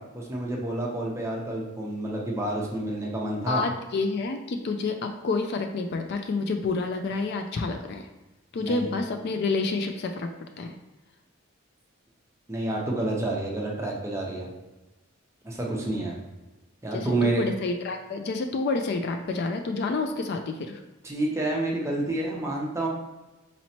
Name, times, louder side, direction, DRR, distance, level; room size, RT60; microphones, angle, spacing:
voice 1, 0.0-3.6 8.6-8.9 12.5-14.5 15.4-16.3 16.8-17.5 21.0-22.9, right 2 dB, 15° right, -3 dB, 0.6 m, -29 dB
voice 2, 3.5-8.1 8.5-10.7 16.9-20.8, left 3 dB, 50° left, 5 dB, 0.3 m, -29 dB
4.1 x 3.0 x 2.8 m, 1.1 s
head